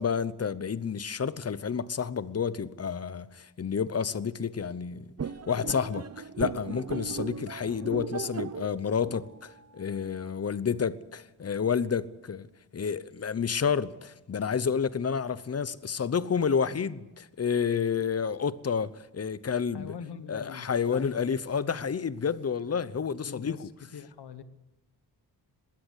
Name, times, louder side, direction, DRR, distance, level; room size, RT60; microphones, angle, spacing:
voice 1, 0.0-5.1 5.5-12.5 12.7-19.9 20.3-23.7, left 6 dB, 40° left, 0.8 m, -30 dB
sound 1, 5.2-10.3, right 6 dB, 40° right, 0.9 m, -38 dB
voice 2, 19.7-21.4 21.7-21.8 23.2-23.6 23.9-24.4, left 7 dB, 80° left, 1.4 m, -42 dB
21.0 x 16.5 x 8.3 m
wide cardioid pair, 115°, 39 cm